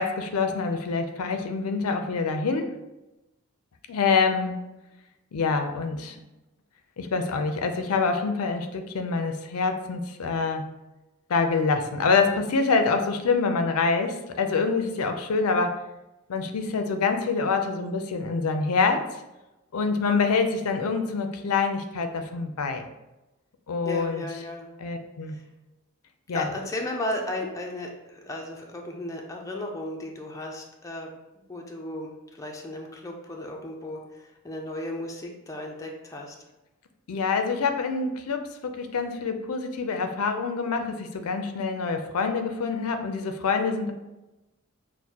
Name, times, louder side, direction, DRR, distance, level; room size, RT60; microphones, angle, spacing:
voice 1, 0.0-2.7 3.9-4.5 5.3-6.2 7.0-10.7 11.3-15.8 16.3-19.1 19.7-22.9 23.7-24.2 24.8-25.4 26.3-26.5 37.1-43.9, left 4 dB, 85° left, 6 dB, 0.5 m, -26 dB
voice 2, 23.8-24.7 25.2-25.5 26.3-31.1 31.5-36.4, left 1 dB, 15° left, 0 dB, 0.4 m, -35 dB
6.2 x 2.1 x 2.8 m, 0.99 s
head